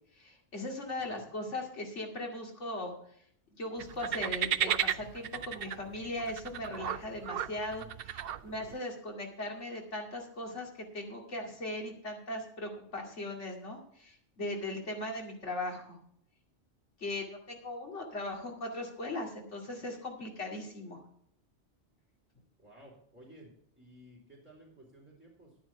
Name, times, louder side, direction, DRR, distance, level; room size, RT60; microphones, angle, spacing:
voice 1, 0.2-2.9 3.5-16.0 17.0-21.0, left 1 dB, 80° left, 1 dB, 2.7 m, -39 dB
voice 2, 1.0-1.3 22.6-25.6, right 1 dB, 10° right, -7 dB, 4.0 m, -56 dB
sound 1, 3.8-8.8, right 10 dB, 60° right, 0.7 m, -34 dB
11.0 x 9.4 x 4.7 m, 0.68 s
omnidirectional pair, 1.2 m